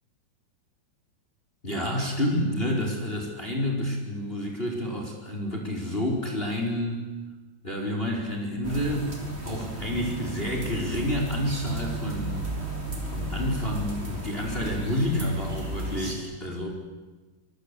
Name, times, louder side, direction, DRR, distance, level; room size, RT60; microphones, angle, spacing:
voice 1, 1.6-7.1 7.6-9.2 9.4-12.5 13.1-16.7, left 1 dB, 15° left, 2 dB, 4.4 m, -29 dB
sound 1, 8.6-16.1, right 1 dB, 15° right, 4.2 m, -34 dB
25.0 x 24.5 x 8.4 m, 1.2 s
omnidirectional pair, 4.2 m